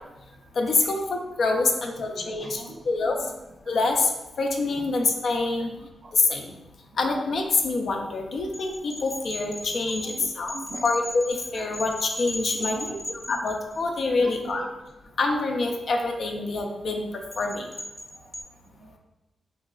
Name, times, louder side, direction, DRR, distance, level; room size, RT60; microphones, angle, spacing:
voice 1, 0.6-2.6 2.9-3.2 3.7-4.1 4.4-5.7 6.1-6.6 7.0-10.5 10.8-12.8 13.3-14.6 15.2-17.0 17.4-17.7, left 3 dB, 70° left, 2 dB, 0.5 m, -26 dB
voice 2, 2.1-2.9 3.2-3.3 3.7-3.8 4.7-4.9 5.6-6.1 10.0-10.9 11.5-11.7 12.5-13.1 13.3-13.6 14.1-14.7 18.2-18.3 18.7-19.0, right 3 dB, 50° right, 3 dB, 0.5 m, -41 dB
sound 1, 8.5-14.0 17.3-18.4, left 1 dB, 30° left, 0.6 m, -36 dB
3.7 x 3.1 x 2.4 m, 1.0 s
cardioid pair, 60°, 0 cm